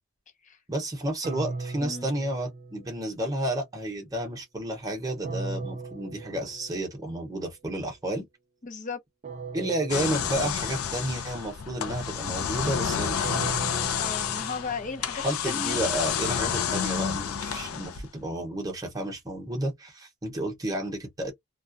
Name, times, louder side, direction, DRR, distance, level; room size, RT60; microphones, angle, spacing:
voice 1, 0.7-8.3 9.5-13.6 15.2-21.3, right 1 dB, 15° right, 0.9 m, -31 dB
sound 1, 1.2-3.3 5.2-7.1 9.2-11.1 13.2-15.4, right 3 dB, 35° right, 0.3 m, -38 dB
voice 2, 8.6-9.0 13.9-15.8, left 4 dB, 35° left, 0.6 m, -35 dB
sound 2, 9.9-18.2, left 8 dB, 85° left, 0.5 m, -30 dB
2.3 x 2.1 x 2.5 m
head